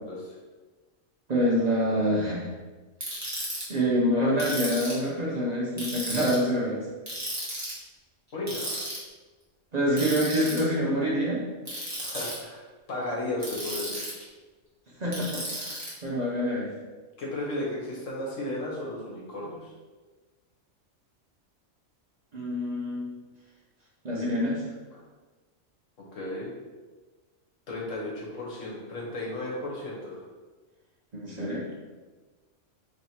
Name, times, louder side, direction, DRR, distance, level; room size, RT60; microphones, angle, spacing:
voice 1, 1.3-2.4 3.7-6.9 9.7-11.4 15.0-16.7 22.3-23.1 24.0-24.7 31.1-31.6, equal, 40° right, -5 dB, 0.7 m, -26 dB
Ratchet pawl, 3.0-3.6 4.4-5.1 5.8-6.4 7.1-7.8 8.5-9.0 10.0-10.6 11.6-12.3 13.4-14.2 15.1-15.9, right 1 dB, 15° right, 1.1 m, -34 dB
voice 2, 8.3-8.8 12.0-12.6 12.9-14.1 17.2-19.7 26.1-26.5 27.7-30.2, left 1 dB, 80° left, -4 dB, 1.5 m, -34 dB
3.2 x 3.0 x 4.2 m, 1.3 s
omnidirectional pair, 1.3 m